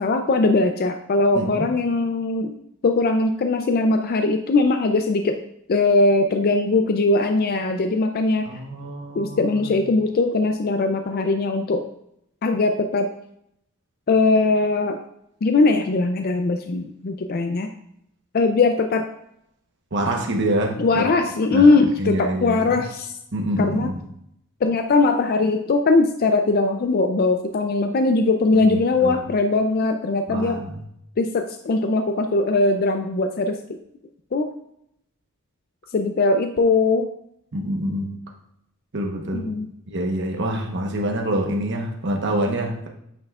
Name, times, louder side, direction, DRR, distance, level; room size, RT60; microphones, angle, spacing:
voice 1, 0.0-2.6 2.8-5.3 5.7-8.5 9.2-11.8 12.4-13.1 14.1-15.0 15.4-17.7 18.3-19.0 20.8-23.1 23.6-23.9 24.6-30.6 31.2-33.6 34.3-34.5 35.9-37.1 39.3-39.7, left 3 dB, 45° left, 6 dB, 0.4 m, -20 dB
voice 2, 1.3-1.7 8.5-9.8 19.9-21.0 21.5-22.8 23.3-24.0 28.6-29.2 30.3-30.7 37.5-38.1 38.9-39.5 39.9-42.9, right 1 dB, 55° right, 1 dB, 1.0 m, -26 dB
8.9 x 5.5 x 2.3 m, 0.75 s
head